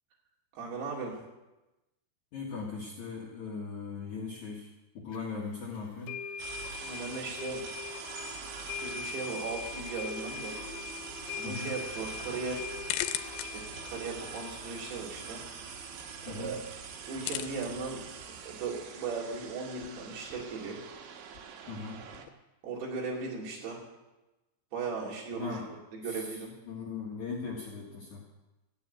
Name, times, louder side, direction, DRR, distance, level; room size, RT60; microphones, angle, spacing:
voice 1, 0.5-1.2 6.8-7.6 8.5-10.6 11.4-12.7 13.4-15.9 16.3-16.6 17.0-20.8 22.6-23.8 24.7-25.6 25.9-26.6, right 4 dB, 65° right, -3 dB, 4.9 m, -38 dB
voice 2, 2.3-6.2 11.4-11.7 16.3-16.5 21.7-22.3 25.4-25.7 26.1-26.3 26.6-28.2, left 4 dB, 55° left, -4 dB, 2.6 m, -39 dB
sound 1, 5.1-5.2 6.1-17.6, left 7 dB, 70° left, 2.6 m, -42 dB
sound 2, 6.4-22.3, right 7 dB, 85° right, 3.6 m, -44 dB
sound 3, 11.1-22.3, left 13 dB, 90° left, 3.0 m, -44 dB
14.0 x 7.6 x 8.9 m, 1.0 s
omnidirectional pair, 5.1 m